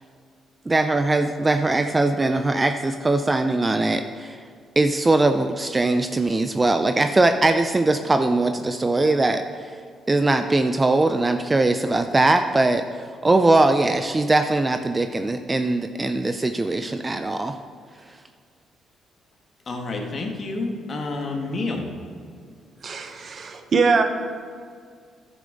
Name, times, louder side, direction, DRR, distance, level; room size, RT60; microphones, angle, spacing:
voice 1, 0.7-4.4 4.8-9.8 10.1-17.6, right 2 dB, 20° right, 7 dB, 0.4 m, -21 dB
voice 2, 19.7-21.9, left 3 dB, 45° left, 2 dB, 1.4 m, -29 dB
voice 3, 22.8-24.0, right 4 dB, 45° right, 6 dB, 0.8 m, -22 dB
11.5 x 6.8 x 3.8 m, 2.1 s
cardioid pair, 90°, 0 cm